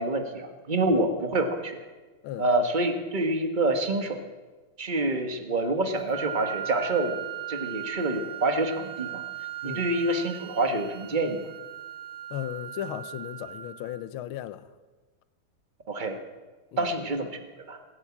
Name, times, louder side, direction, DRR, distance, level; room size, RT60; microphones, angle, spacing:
voice 1, 0.0-1.8 2.4-4.2 4.8-7.2 7.5-9.2 9.6-11.4 15.9-16.2 16.8-17.4 17.7-17.8, right 2 dB, 25° right, 1.3 m, -27 dB
Wind instrument woodwind instrument, 6.1-14.0, right 12 dB, 65° right, 0.8 m, -38 dB
voice 2, 12.3-14.7 16.7-16.9, left 11 dB, 90° left, 1.6 m, -36 dB
20.0 x 8.1 x 8.6 m
omnidirectional pair, 2.2 m